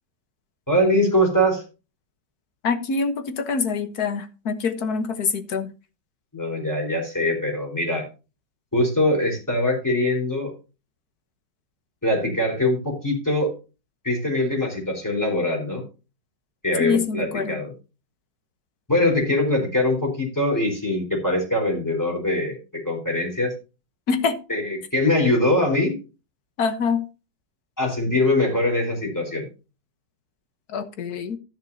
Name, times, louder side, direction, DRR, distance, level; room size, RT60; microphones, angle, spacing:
voice 1, 0.7-1.6 6.3-8.0 8.7-10.5 12.0-13.5 14.0-15.8 16.6-17.7 18.9-23.5 24.5-24.6 24.9-26.0 27.8-29.5, left 1 dB, 10° left, 0 dB, 4.4 m, -22 dB
voice 2, 2.6-5.7 16.8-17.6 24.1-24.4 26.6-27.1 30.7-31.4, left 5 dB, 60° left, 10 dB, 1.6 m, -25 dB
12.0 x 10.5 x 2.8 m, 0.31 s
omnidirectional pair, 2.0 m